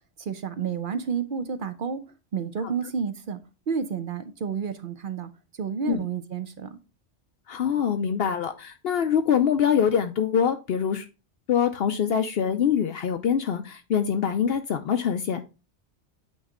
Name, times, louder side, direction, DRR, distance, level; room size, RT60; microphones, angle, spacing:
voice 1, 0.2-2.0 2.3-3.4 3.7-5.3 5.6-6.8, right 6 dB, 55° right, 0.7 m, -30 dB
voice 2, 7.5-11.1 11.5-15.4, left 8 dB, 65° left, 0.7 m, -24 dB
8.7 x 3.2 x 3.7 m
omnidirectional pair, 1.2 m